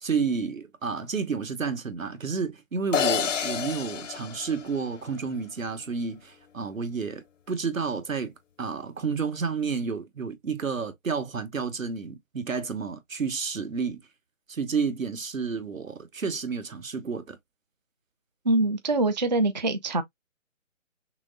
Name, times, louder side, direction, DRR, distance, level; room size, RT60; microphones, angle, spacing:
voice 1, 0.0-8.3 8.6-14.0 14.5-17.4, right 5 dB, 80° right, 1.0 m, -30 dB
sound 1, 2.9-5.3, left 8 dB, 65° left, 0.6 m, -29 dB
voice 2, 18.5-20.0, right 2 dB, 35° right, 0.4 m, -24 dB
6.0 x 2.0 x 2.6 m
figure-of-eight pair, 145°, 40 cm